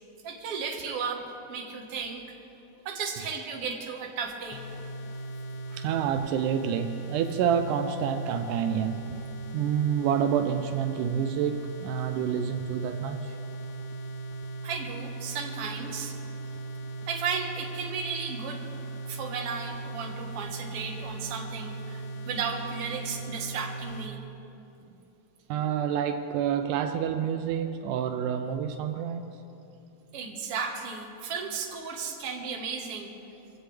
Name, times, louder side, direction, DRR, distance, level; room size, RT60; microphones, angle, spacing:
voice 1, 0.2-2.4 2.9-4.6 5.7-5.8 14.6-16.2 17.1-18.6 19.1-24.2 30.1-33.1, right 5 dB, 50° right, 1 dB, 2.2 m, -34 dB
sound 1, 4.5-24.1, right 3 dB, 70° left, 2.1 m, -38 dB
voice 2, 5.8-9.3 9.5-13.4 25.5-29.3, right 8 dB, 85° right, 7 dB, 2.2 m, -28 dB
25.5 x 15.5 x 3.4 m, 2.9 s
omnidirectional pair, 3.7 m